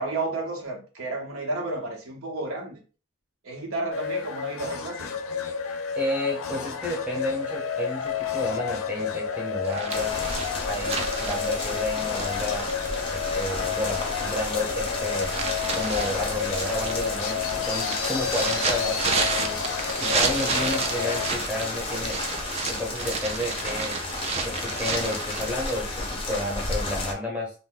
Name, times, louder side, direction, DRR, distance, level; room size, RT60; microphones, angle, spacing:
voice 1, 0.0-2.8 3.4-5.2, right 2 dB, 80° right, 0.9 m, -31 dB
sound 1, 3.9-21.3, left 7 dB, 75° left, 0.5 m, -31 dB
voice 2, 6.0-10.1 10.7-12.6 13.1-15.3 15.7-19.6 20.0-22.2 22.7-24.0 24.4-27.5, left 1 dB, 5° right, 0.8 m, -31 dB
sound 2, 9.6-14.3 14.8-25.7, right 4 dB, 30° right, 0.3 m, -31 dB
sound 3, 9.9-27.1, left 2 dB, 25° left, 0.5 m, -32 dB
2.6 x 2.2 x 3.6 m
head